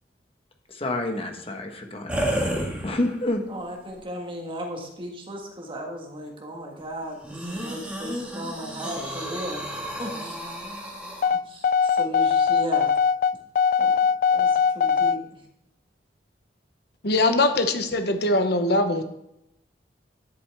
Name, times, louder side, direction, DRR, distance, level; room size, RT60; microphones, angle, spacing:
voice 1, 0.7-2.5 2.8-3.4, left 1 dB, 35° left, 4 dB, 1.2 m, -28 dB
sound 1, 2.1-3.3 4.0-4.1 7.2-11.2, equal, 5° right, 1.9 m, -31 dB
voice 2, 3.5-9.6 10.0-10.3 11.5-12.9 13.8-14.0 14.3-15.2, equal, 30° right, 1 dB, 1.6 m, -36 dB
sound 2, 11.2-15.2, left 6 dB, 50° left, 0.3 m, -21 dB
voice 3, 17.0-19.0, left 2 dB, 65° left, 7 dB, 0.9 m, -22 dB
10.5 x 8.1 x 3.5 m, 0.80 s
head